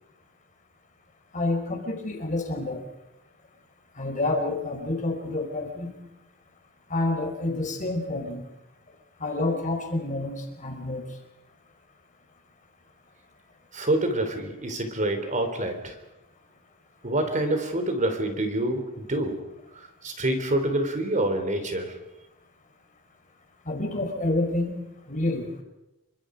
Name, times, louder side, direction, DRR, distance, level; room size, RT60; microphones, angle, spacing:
voice 1, 1.3-2.8 4.0-5.9 6.9-8.4 9.2-11.1 23.6-24.8 25.1-25.5, left 2 dB, 35° left, 3 dB, 4.6 m, -28 dB
voice 2, 13.7-16.0 17.0-19.4 19.7-22.0, right 1 dB, 35° right, 7 dB, 3.4 m, -27 dB
28.0 x 24.0 x 5.1 m, 0.95 s
head